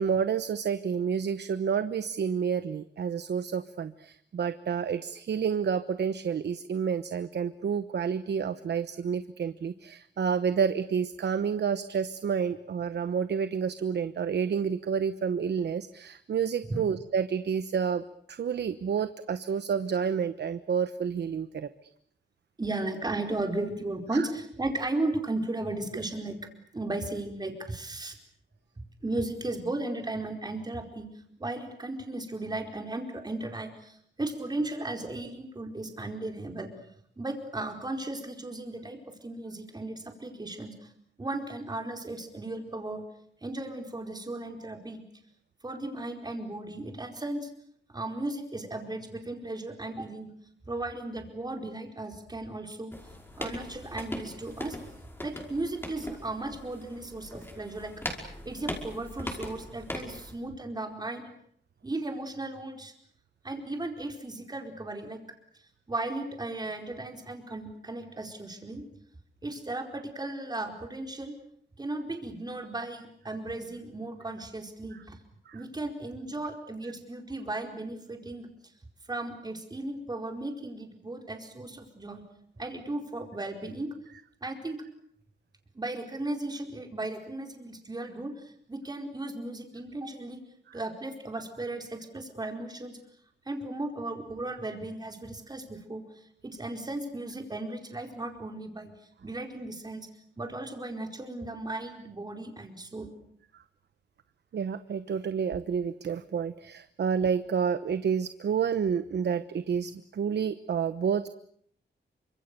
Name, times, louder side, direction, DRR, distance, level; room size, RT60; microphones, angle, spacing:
voice 1, 0.0-21.7 24.1-24.3 75.5-75.6 90.7-90.8 104.5-111.3, right 7 dB, 70° right, 12 dB, 1.1 m, -29 dB
voice 2, 22.6-26.4 26.7-28.2 28.8-31.1 31.4-36.7 37.2-40.9 41.2-43.0 43.4-45.0 45.6-47.5 47.9-50.3 50.6-52.9 53.4-54.8 55.2-57.9 58.4-61.3 61.8-62.9 63.4-65.2 65.9-68.8 69.4-71.3 71.8-75.2 75.5-78.5 79.1-82.2 82.6-83.9 84.4-84.8 85.7-90.4 90.7-93.0 93.4-96.0 96.4-98.9 99.2-100.1 100.4-103.1, right 2 dB, 20° right, 4 dB, 4.6 m, -35 dB
sound 1, 52.9-60.3, left 1 dB, 10° left, 5.4 m, -40 dB
29.0 x 26.0 x 6.8 m, 0.66 s
wide cardioid pair, 140°, 18 cm